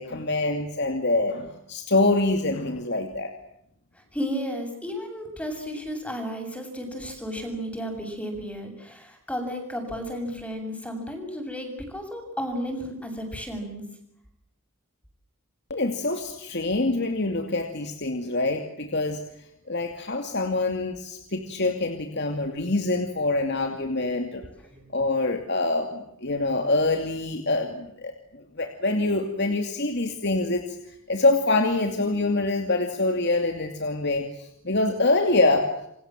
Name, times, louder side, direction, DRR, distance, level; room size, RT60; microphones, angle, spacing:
voice 1, 0.0-3.3 15.7-19.2 19.7-24.4 24.9-30.6 31.1-35.7, left 2 dB, 55° left, 5 dB, 2.6 m, -25 dB
voice 2, 3.9-13.9 24.4-24.9, equal, 5° left, 4 dB, 7.3 m, -33 dB
29.0 x 25.0 x 7.6 m, 0.78 s
head